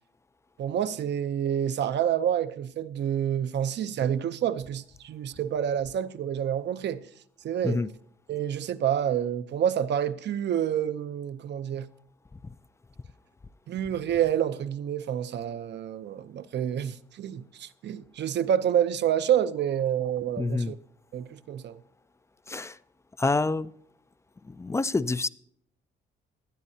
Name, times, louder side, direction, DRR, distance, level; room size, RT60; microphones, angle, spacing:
voice 1, 0.6-7.1 7.4-7.8 8.3-11.9 13.7-20.8 21.1-21.8, right 9 dB, 60° right, 0.7 m, -28 dB
voice 2, 20.4-20.7 22.5-22.8 23.2-23.7 24.4-25.3, left 3 dB, 15° left, 0.4 m, -27 dB
18.5 x 12.0 x 2.8 m
cardioid pair, 90°, 20 cm